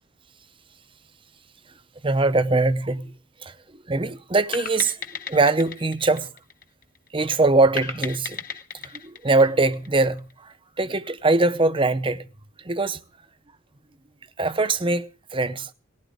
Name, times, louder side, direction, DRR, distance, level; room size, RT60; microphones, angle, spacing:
voice 1, 2.0-3.1 3.4-3.5 3.9-5.0 5.3-6.3 7.1-8.4 8.9-12.2 12.6-13.0 14.4-15.7, right 2 dB, 25° right, 0.7 m, -22 dB
sound 1, 4.5-7.1 7.8-10.3, left 7 dB, 40° left, 1.1 m, -36 dB
19.0 x 17.0 x 3.5 m
head